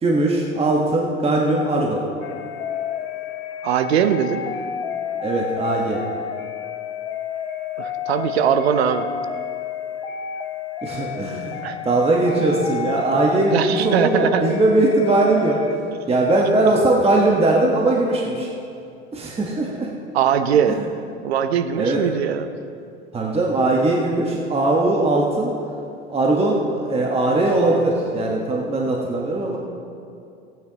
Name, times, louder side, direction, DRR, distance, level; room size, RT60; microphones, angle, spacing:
voice 1, 0.0-2.0 5.2-6.0 10.8-18.5 19.1-19.9 20.7-20.8 21.8-22.0 23.1-25.6 26.1-29.6, right 2 dB, 20° right, -1 dB, 1.3 m, -20 dB
sound 1, 2.2-15.8, left 8 dB, 70° left, 0.8 m, -31 dB
voice 2, 3.6-4.4 7.8-9.1 11.6-11.8 13.5-14.5 20.1-20.8 21.2-22.5, right 8 dB, 75° right, 10 dB, 0.8 m, -20 dB
17.5 x 9.1 x 3.0 m, 2.5 s
hypercardioid pair, 80°, 32 cm